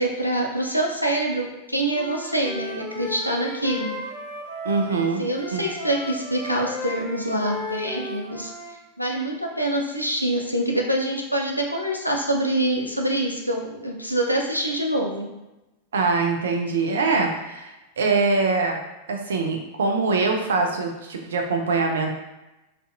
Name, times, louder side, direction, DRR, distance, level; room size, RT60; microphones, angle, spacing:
voice 1, 0.0-4.0 5.0-8.5 9.0-15.3, right 1 dB, 90° left, 0 dB, 0.4 m, -25 dB
Wind instrument woodwind instrument, 1.9-8.8, left 1 dB, 50° left, 1.0 m, -35 dB
voice 2, 4.6-5.2 5.5-5.6 15.9-18.8 19.1-22.1, right 4 dB, 65° right, 2 dB, 0.4 m, -23 dB
2.6 x 2.5 x 2.2 m, 1.0 s
figure-of-eight pair, 90°, 0 cm